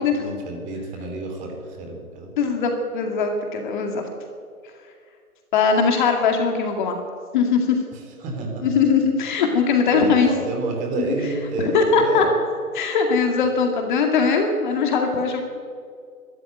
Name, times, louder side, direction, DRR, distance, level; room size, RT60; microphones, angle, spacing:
voice 1, 0.0-2.7 7.9-8.8 9.9-12.3, right 2 dB, 15° right, 3 dB, 3.3 m, -30 dB
voice 2, 2.4-4.0 5.5-7.0 7.3-7.8 8.6-10.3 11.7-12.3 12.7-15.4, left 5 dB, 30° left, 3 dB, 2.3 m, -20 dB
21.5 x 13.5 x 9.2 m, 2.2 s
hypercardioid pair, 150°, 45 cm